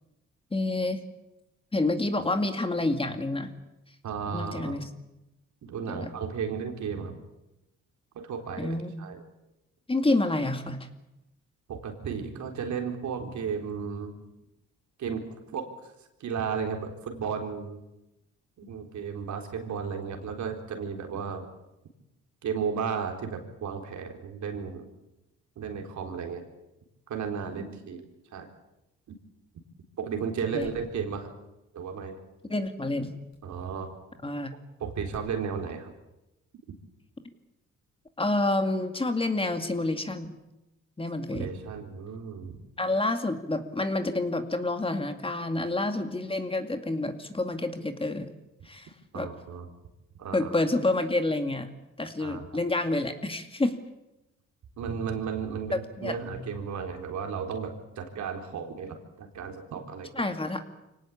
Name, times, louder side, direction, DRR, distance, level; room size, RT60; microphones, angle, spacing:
voice 1, 0.5-1.0 1.7-3.5 4.3-4.9 5.9-6.1 8.6-9.1 9.9-10.9 30.5-30.7 32.5-33.2 34.2-34.5 38.2-40.4 41.0-41.5 42.8-48.3 48.7-49.3 50.3-51.7 52.0-53.8 56.0-56.2 60.1-60.8, left 2 dB, 20° left, 7 dB, 2.2 m, -28 dB
voice 2, 4.0-4.8 5.6-7.1 8.1-9.2 11.7-14.1 15.0-15.2 15.5-15.7 16.2-17.8 18.6-21.5 22.4-24.9 25.6-26.4 27.1-28.1 28.3-28.5 30.0-31.4 31.7-32.2 33.4-33.9 34.8-35.9 41.3-42.6 49.1-49.7 50.2-50.5 52.2-52.6 54.8-60.1, right 6 dB, 70° right, 4 dB, 4.0 m, -34 dB
sound 1, 30.6-30.9 33.3-33.5 35.1-35.4, left 4 dB, 65° left, 7.0 m, -50 dB
24.5 x 18.0 x 8.6 m, 0.94 s
cardioid pair, 90°, 30 cm